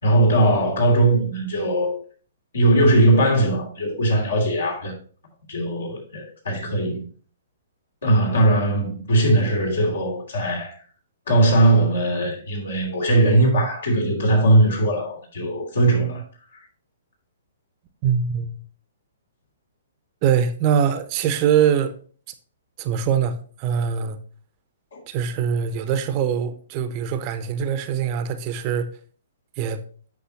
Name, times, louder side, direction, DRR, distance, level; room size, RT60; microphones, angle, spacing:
voice 1, 0.0-1.9 2.5-4.9 5.5-7.0 8.0-10.7 11.3-16.2 16.5-16.6 24.9-25.0, right 1 dB, 70° left, 2.9 m, -19 dB
voice 2, 18.0-18.6 20.2-21.9 22.8-24.2 25.1-28.9 29.6-29.8, right 8 dB, 35° right, 0.7 m, -23 dB
8.4 x 5.5 x 2.8 m
figure-of-eight pair, 120°, 0 cm